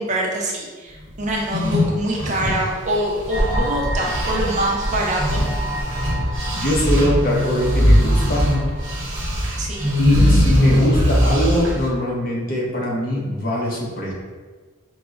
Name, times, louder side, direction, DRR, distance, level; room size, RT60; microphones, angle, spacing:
voice 1, 0.0-5.5 9.6-9.9, right 1 dB, 35° right, -2 dB, 0.4 m, -25 dB
sound 1, 1.3-3.7 4.0-11.9, equal, 65° right, 0.7 m, -20 dB
Alien Alarm, 3.3-10.0, right 1 dB, 75° left, 1.0 m, -28 dB
voice 2, 6.5-8.4 10.0-14.1, equal, 45° left, -3 dB, 0.7 m, -22 dB
4.6 x 2.0 x 2.4 m, 1.4 s
head